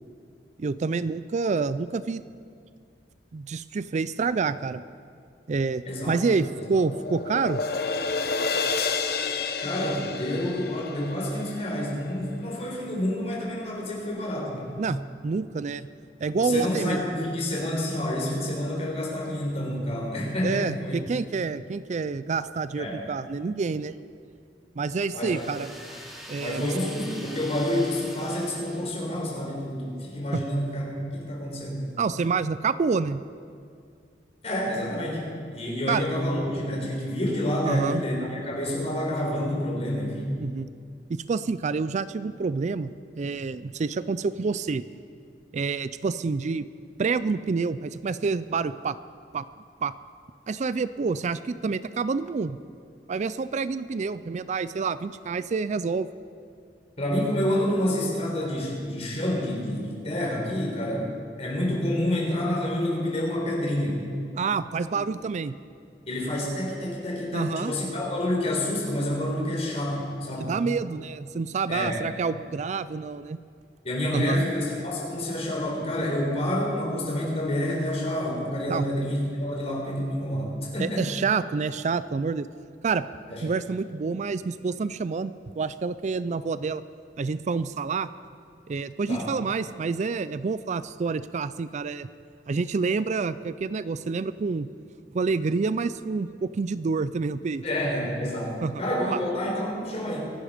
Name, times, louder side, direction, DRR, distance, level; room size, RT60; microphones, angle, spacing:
voice 1, 0.6-2.2 3.3-4.8 5.5-7.6 14.8-15.0 15.2-15.9 16.2-17.0 20.4-23.9 24.8-25.7 26.3-26.7 30.3-30.4 32.0-33.2 35.9-36.0 37.6-38.0 40.4-40.7 41.1-42.9 43.2-44.8 45.5-46.7 47.0-49.0 49.3-49.5 49.8-49.9 50.5-52.6 53.1-56.1 64.4-65.5 67.3-67.7 70.4-73.4 74.1-74.4 78.7-78.9 80.8-82.5 82.8-83.1 83.4-86.8 87.2-88.1 88.7-92.1 92.5-94.7 95.1-97.6 98.6-98.7 99.1-99.2, right 4 dB, 45° right, 15 dB, 0.4 m, -28 dB
voice 2, 5.9-6.2 6.6-6.8 9.6-14.8 16.4-20.9 22.8-23.0 25.1-25.4 26.4-32.0 34.4-40.4 57.0-61.1 61.4-64.0 66.1-70.5 71.7-72.0 73.8-81.1 83.3-83.4 89.1-89.3 97.6-100.3, left 1 dB, 40° left, -2 dB, 4.2 m, -28 dB
sound 1, 6.1-12.3, left 4 dB, 65° left, 1.0 m, -30 dB
sound 2, 25.3-29.4, equal, ahead, 2.4 m, -44 dB
24.0 x 11.5 x 5.1 m, 2.2 s
head